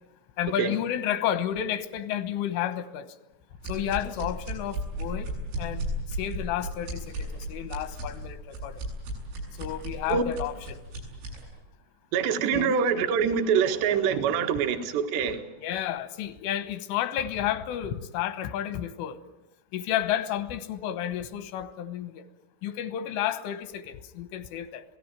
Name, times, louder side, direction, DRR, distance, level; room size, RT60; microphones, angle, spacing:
voice 1, 0.4-3.1 3.7-5.3 5.6-5.8 6.2-8.8 9.6-10.8 12.5-12.8 15.6-19.2 19.7-22.2 22.6-24.8, left 11 dB, 85° left, 3.6 m, -31 dB
sound 1, 3.6-11.4, right 1 dB, 90° right, 10.5 m, -35 dB
voice 2, 12.1-15.4, right 7 dB, 65° right, 3.5 m, -25 dB
27.5 x 18.0 x 9.1 m
omnidirectional pair, 5.6 m